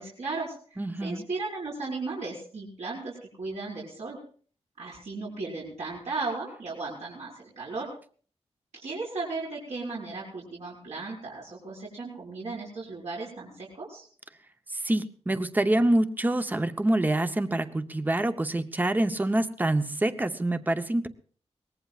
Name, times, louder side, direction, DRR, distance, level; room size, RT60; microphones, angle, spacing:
voice 1, 0.0-4.2 4.8-7.9 8.7-14.1, right 3 dB, 75° right, -6 dB, 5.2 m, -36 dB
voice 2, 0.8-1.2 14.7-21.1, right 1 dB, 15° right, 8 dB, 0.8 m, -26 dB
23.0 x 19.0 x 2.4 m, 0.43 s
wide cardioid pair, 155°, 12 cm